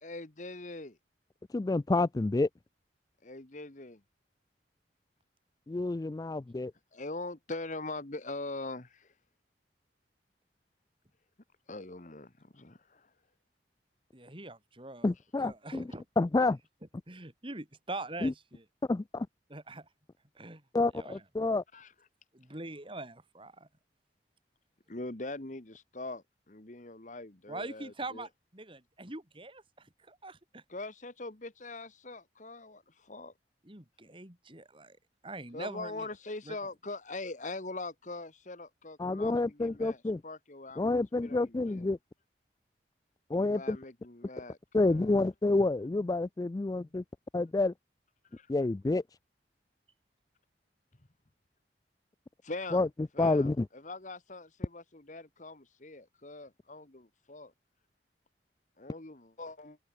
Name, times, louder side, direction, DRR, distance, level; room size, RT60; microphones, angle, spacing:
voice 1, 0.0-1.0 3.2-4.0 6.9-9.1 11.7-13.1 21.7-21.9 24.9-28.3 30.7-33.3 35.5-41.9 43.4-45.1 48.3-48.5 52.4-52.9 53.1-57.5 58.8-59.8, left 2 dB, 45° left, 1.6 m, -42 dB
voice 2, 1.5-2.5 5.7-6.7 15.0-15.8 16.2-16.6 18.2-18.3 18.9-19.3 20.7-21.6 39.0-40.2 40.8-42.0 43.3-43.8 44.7-47.0 47.3-47.7 48.5-49.0 52.7-52.9 53.2-53.7, left 2 dB, 20° left, 0.3 m, -28 dB
voice 3, 14.1-15.1 15.4-16.1 17.1-18.6 19.5-19.9 20.4-20.6 20.9-21.2 22.3-23.7 27.5-30.6 33.6-35.0 35.2-36.1 36.5-36.6, right 2 dB, 30° right, 3.6 m, -43 dB
open air
head